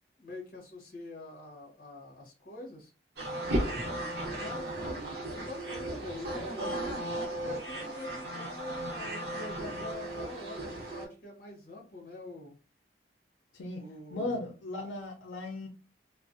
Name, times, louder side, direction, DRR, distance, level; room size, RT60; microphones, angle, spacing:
voice 1, 0.2-2.9 4.2-6.8 7.3-12.6 13.7-14.5, left 2 dB, 50° left, 0 dB, 1.0 m, -45 dB
sound 1, 3.2-11.1, right 1 dB, 65° right, 0.8 m, -35 dB
voice 2, 14.1-15.7, left 2 dB, 90° left, 1 dB, 0.5 m, -36 dB
2.4 x 2.1 x 2.5 m, 0.33 s
head